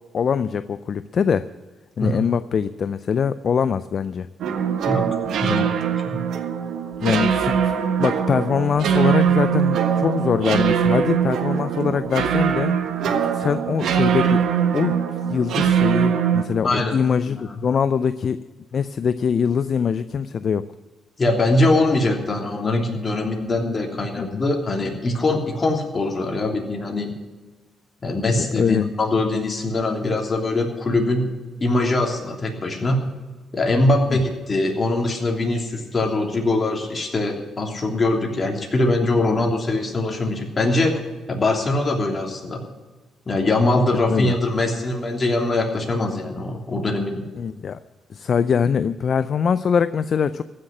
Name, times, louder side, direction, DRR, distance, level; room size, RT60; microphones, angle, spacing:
voice 1, 0.1-1.5 2.0-4.3 5.5-5.7 7.0-7.7 8.0-12.7 13.3-14.4 14.7-15.0 15.3-18.4 18.7-20.7 24.2-24.4 28.4-28.8 34.1-34.2 39.4-39.5 44.1-44.3 47.4-47.8 48.1-50.4, left 6 dB, 50° left, 13 dB, 0.4 m, -23 dB
sound 1, 4.4-16.4, right 8 dB, 75° right, 1.4 m, -21 dB
voice 2, 16.6-16.9 17.3-17.6 21.2-27.1 28.0-31.3 31.6-33.0 33.5-41.0 41.3-42.6 43.3-47.2, left 2 dB, 30° left, 1 dB, 3.1 m, -22 dB
15.0 x 6.6 x 9.9 m, 1.3 s
cardioid pair, 90°, 0 cm